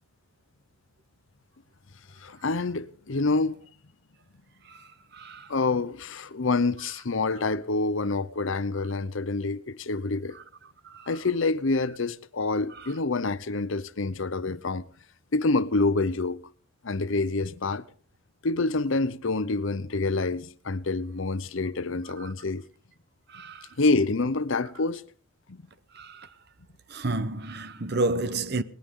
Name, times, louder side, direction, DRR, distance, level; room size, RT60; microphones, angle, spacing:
voice 1, 2.2-3.6 5.5-10.4 11.1-14.8 15.3-16.4 16.8-17.8 18.4-22.6 23.8-25.1 25.5-25.6, left 3 dB, 65° left, 0.8 m, -27 dB
voice 2, 5.1-5.5 10.9-11.1 23.3-23.7 25.9-26.3 26.9-28.6, right 2 dB, 50° right, 0.9 m, -30 dB
20.5 x 18.5 x 3.7 m
head